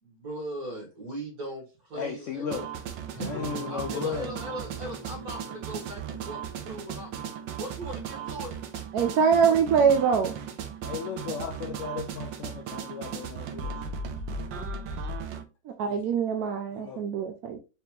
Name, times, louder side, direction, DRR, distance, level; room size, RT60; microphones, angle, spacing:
voice 1, 0.0-2.6 3.2-7.1 7.6-8.5, right 1 dB, 55° right, 1.9 m, -39 dB
voice 2, 1.9-2.7 3.2-4.3 10.8-14.0 15.8-16.0 16.7-17.0, left 6 dB, 75° left, 0.7 m, -35 dB
sound 1, 2.5-15.4, right 6 dB, 85° right, 1.4 m, -36 dB
Guitar, 3.1-7.7, left 1 dB, 25° left, 2.0 m, -43 dB
voice 3, 8.9-10.3 15.8-17.6, right 6 dB, 70° right, 1.0 m, -23 dB
4.2 x 3.3 x 2.8 m
omnidirectional pair, 1.9 m